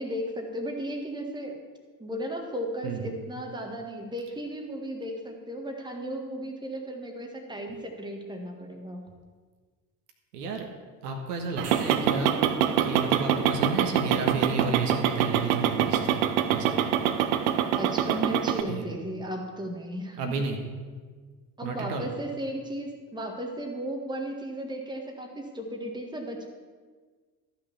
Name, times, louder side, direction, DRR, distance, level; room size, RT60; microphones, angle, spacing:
voice 1, 0.0-1.6 2.0-9.0 17.8-20.4 21.6-26.5, right 1 dB, 10° right, 2 dB, 1.8 m, -35 dB
voice 2, 2.8-3.1 10.3-10.6 11.0-12.3 12.8-16.2 16.5-16.9 18.7-18.8 20.2-20.6 21.6-22.1, right 3 dB, 65° right, 3 dB, 1.5 m, -32 dB
sound 1, 11.4-12.4 17.1-17.2, right 3 dB, 30° right, 1.8 m, -44 dB
sound 2, 11.6-18.6, right 9 dB, 50° right, 0.9 m, -25 dB
13.5 x 5.8 x 7.2 m, 1.5 s
figure-of-eight pair, 65°, 50 cm